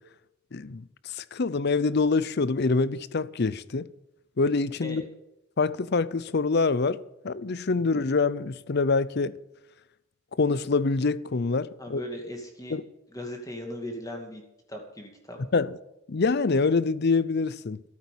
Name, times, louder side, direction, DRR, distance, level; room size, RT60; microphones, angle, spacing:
voice 1, 0.5-3.9 4.4-5.0 5.6-7.0 7.2-9.4 10.4-12.0 12.7-12.8 15.5-15.8 16.1-17.8, left 4 dB, 50° left, 0.6 m, -25 dB
voice 2, 11.8-12.8 13.1-14.4 14.7-15.4, left 1 dB, 15° left, 2.3 m, -38 dB
14.0 x 8.6 x 8.4 m
head